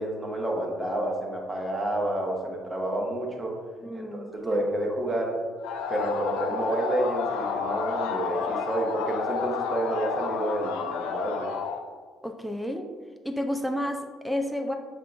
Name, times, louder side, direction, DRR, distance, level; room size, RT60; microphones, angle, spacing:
voice 1, 0.0-3.6 3.9-5.4 5.9-11.5, right 1 dB, 30° right, -1 dB, 1.1 m, -29 dB
voice 2, 3.8-4.6 12.2-12.9 13.2-14.7, left 1 dB, ahead, 4 dB, 0.5 m, -31 dB
sound 1, 5.6-11.8, left 6 dB, 80° left, 0.4 m, -31 dB
5.6 x 3.6 x 2.5 m, 1.5 s
supercardioid pair, 60°, 0 cm